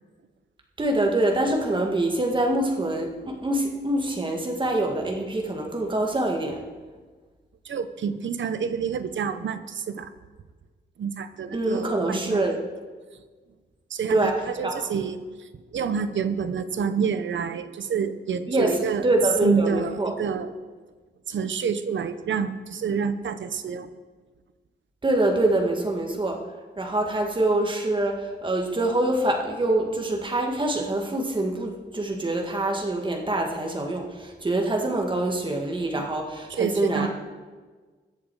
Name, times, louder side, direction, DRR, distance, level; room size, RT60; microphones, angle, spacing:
voice 1, 0.8-6.6 11.5-12.6 14.1-14.4 14.6-14.8 18.5-18.7 19.0-20.2 25.0-26.4 26.8-37.1, right 1 dB, 25° right, 1 dB, 1.9 m, -25 dB
voice 2, 7.6-10.1 11.0-12.4 13.9-14.3 14.6-19.1 19.4-20.5 21.3-23.9 36.0-36.1 36.5-37.1, right 6 dB, 90° right, 11 dB, 0.9 m, -28 dB
21.5 x 7.4 x 4.8 m, 1.4 s
wide cardioid pair, 160°, 19 cm